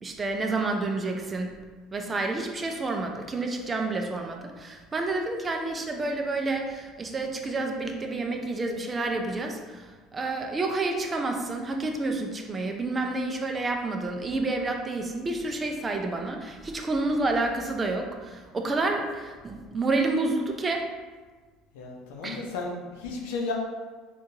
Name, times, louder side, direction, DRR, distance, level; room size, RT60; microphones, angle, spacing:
voice 1, 0.0-1.6 1.9-20.8 22.2-22.4, right 2 dB, 30° right, 3 dB, 0.5 m, -29 dB
voice 2, 21.7-23.5, left 3 dB, 85° left, -1 dB, 0.6 m, -33 dB
3.7 x 2.4 x 2.7 m, 1.4 s
supercardioid pair, 85°, 0 cm